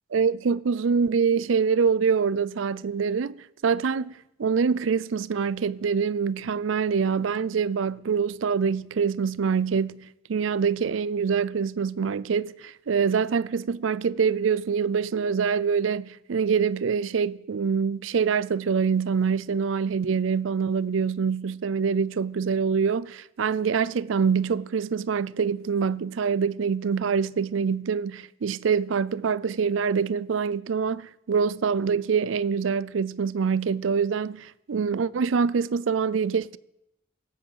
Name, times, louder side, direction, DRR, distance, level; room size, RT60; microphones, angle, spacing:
voice 1, 0.1-36.6, right 6 dB, 80° right, 0.4 m, -25 dB
17.0 x 7.8 x 7.8 m
head